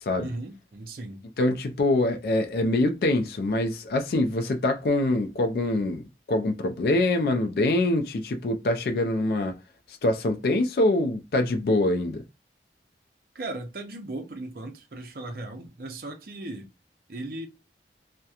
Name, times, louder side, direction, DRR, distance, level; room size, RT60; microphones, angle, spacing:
voice 1, 0.2-1.2 13.3-16.7 17.1-17.5, right 2 dB, 55° right, 0.5 m, -37 dB
voice 2, 1.4-9.6 9.9-12.2, left 2 dB, 60° left, 0.3 m, -24 dB
2.7 x 2.1 x 2.3 m
head